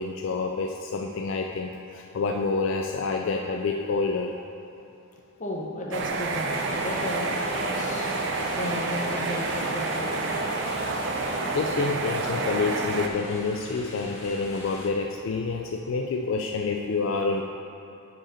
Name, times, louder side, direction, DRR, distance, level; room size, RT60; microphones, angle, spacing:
voice 1, 0.0-4.4 11.5-17.4, left 4 dB, 65° left, 2 dB, 0.3 m, -28 dB
voice 2, 5.4-7.3 7.6-8.1 8.5-10.2, left 1 dB, 35° left, -2 dB, 0.9 m, -34 dB
sound 1, 5.9-13.1, right 3 dB, 60° right, 0.4 m, -29 dB
sound 2, 6.5-14.9, left 1 dB, 80° left, 1.7 m, -41 dB
7.6 x 5.0 x 4.3 m, 2.9 s
head